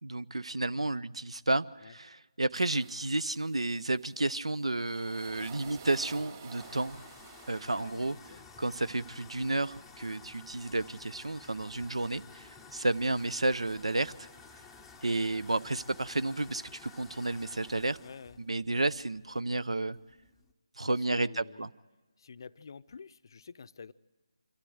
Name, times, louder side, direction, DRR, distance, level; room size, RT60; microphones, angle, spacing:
voice 1, 0.0-7.0 7.5-8.2 8.6-14.3 15.0-18.0 18.4-20.0 20.8-21.7, right 2 dB, 80° right, 15 dB, 0.6 m, -31 dB
sound 1, 2.5-8.4, right 5 dB, 30° right, 3.0 m, -51 dB
sound 2, 6.6-20.5, left 4 dB, 5° left, 0.7 m, -53 dB
voice 2, 7.8-8.4 18.0-18.4 20.8-21.7 22.2-23.9, left 5 dB, 45° left, 15 dB, 0.5 m, -49 dB
25.5 x 13.0 x 7.9 m, 1.3 s
figure-of-eight pair, 160°, 3 cm